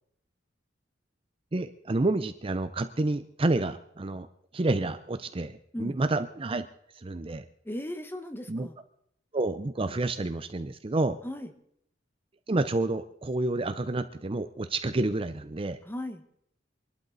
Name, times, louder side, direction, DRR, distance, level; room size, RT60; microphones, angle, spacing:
voice 1, 1.5-4.3 4.5-6.7 7.0-7.4 8.5-8.7 9.3-11.2 12.5-15.8, right 2 dB, 30° right, 10 dB, 0.6 m, -29 dB
voice 2, 7.6-8.8 11.2-11.5 15.8-16.2, left 1 dB, 10° left, 8 dB, 1.2 m, -37 dB
24.5 x 12.0 x 4.0 m, 0.72 s
head